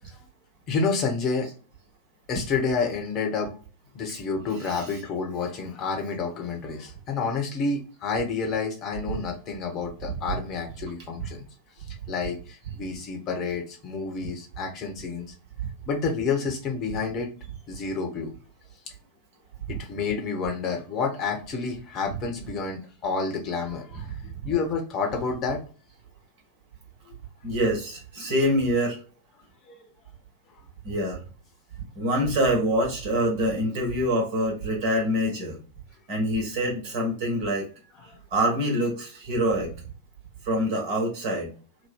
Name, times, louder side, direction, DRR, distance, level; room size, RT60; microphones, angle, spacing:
voice 1, 0.7-1.5 2.3-3.5 3.9-11.5 12.1-15.3 15.9-17.3 17.7-18.3 19.7-24.1 24.4-25.6 27.1-27.2 29.7-29.8 38.0-38.2, left 4 dB, 35° left, 2 dB, 1.0 m, -29 dB
voice 2, 4.5-5.0 27.4-29.0 30.8-31.2 31.9-35.6 36.1-37.7 38.3-39.7 40.4-41.5, equal, 45° right, -1 dB, 1.4 m, -25 dB
3.0 x 2.2 x 3.6 m, 0.37 s
figure-of-eight pair, 90°, 0 cm